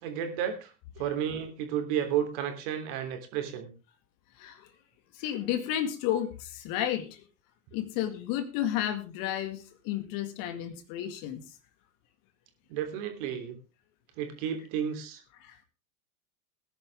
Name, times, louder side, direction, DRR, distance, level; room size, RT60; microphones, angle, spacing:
voice 1, 0.0-0.7 1.0-3.7 12.7-13.6 14.2-15.2, right 9 dB, 50° right, 6 dB, 3.4 m, -32 dB
voice 2, 5.2-7.2 7.7-11.4, left 11 dB, 45° left, 10 dB, 2.1 m, -32 dB
19.0 x 10.5 x 3.5 m, 0.31 s
figure-of-eight pair, 85°, 44 cm